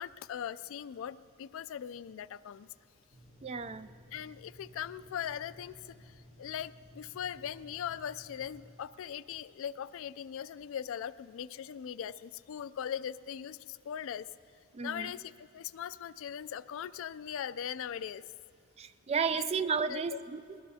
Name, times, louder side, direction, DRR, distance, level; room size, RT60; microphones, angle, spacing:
voice 1, 0.0-2.7 4.1-14.3 14.8-18.2 19.4-19.5 19.9-20.2, left 9 dB, 60° left, 16 dB, 0.3 m, -40 dB
Water tap faucet / Sink (filling or washing), 3.1-8.6, left 1 dB, 55° right, 3.8 m, -56 dB
voice 2, 3.4-3.9 14.7-15.1 18.8-20.6, right 5 dB, 30° right, 12 dB, 0.3 m, -33 dB
22.5 x 19.5 x 2.8 m, 2.7 s
head